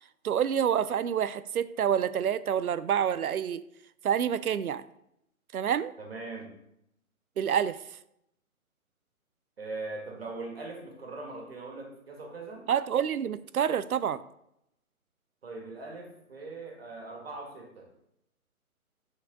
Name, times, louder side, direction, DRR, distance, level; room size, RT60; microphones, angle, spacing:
voice 1, 0.2-3.6 4.0-4.8 5.5-5.9 7.4-7.8 12.7-14.2, right 8 dB, 80° right, 16 dB, 0.6 m, -27 dB
voice 2, 6.0-6.6 9.6-12.7 15.4-17.9, right 3 dB, 45° right, 1 dB, 2.0 m, -41 dB
9.5 x 4.6 x 3.9 m, 0.79 s
hypercardioid pair, 170°, 43 cm